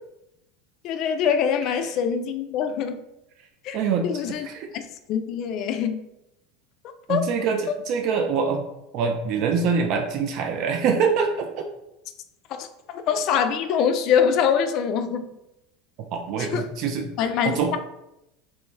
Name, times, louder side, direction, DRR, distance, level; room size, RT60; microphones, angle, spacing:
voice 1, 0.8-3.0 3.6-3.8 4.0-4.5 4.7-4.8 5.1-6.0 7.1-7.2 12.6-15.3 16.4-16.7 17.2-17.8, left 7 dB, 55° left, 9 dB, 0.3 m, -24 dB
voice 2, 3.7-4.7 7.1-8.6 8.9-11.7 16.1-17.1 17.4-17.8, right 5 dB, 55° right, 4 dB, 0.3 m, -24 dB
3.0 x 2.1 x 3.3 m, 0.87 s
hypercardioid pair, 90°, 0 cm